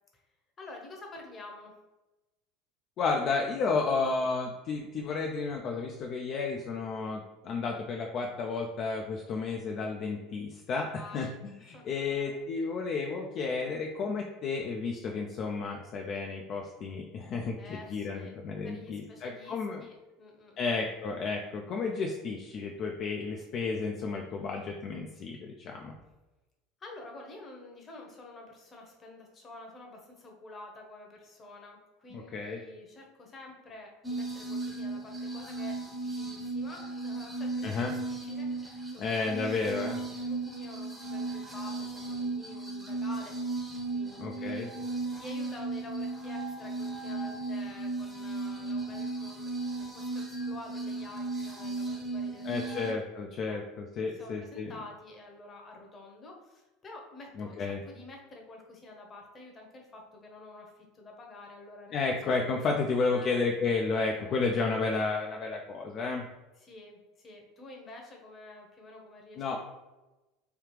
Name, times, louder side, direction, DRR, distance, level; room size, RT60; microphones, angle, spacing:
voice 1, 0.6-1.8 10.9-11.4 11.7-12.4 17.6-18.3 18.6-20.7 26.8-43.6 43.9-44.8 45.2-52.9 53.5-53.6 54.1-62.9 63.1-63.4 64.2-64.7 66.6-69.6, left 2 dB, 30° left, 1 dB, 0.9 m, -49 dB
voice 2, 3.0-19.8 20.6-26.0 32.1-32.6 37.6-37.9 39.0-40.0 44.2-44.7 52.4-54.7 57.4-57.8 61.9-66.2 69.4-69.6, left 4 dB, 50° left, 1 dB, 0.4 m, -32 dB
sound 1, 34.0-52.9, right 3 dB, 10° right, 0.7 m, -36 dB
3.3 x 2.3 x 3.1 m, 1.1 s
hypercardioid pair, 85°, 0 cm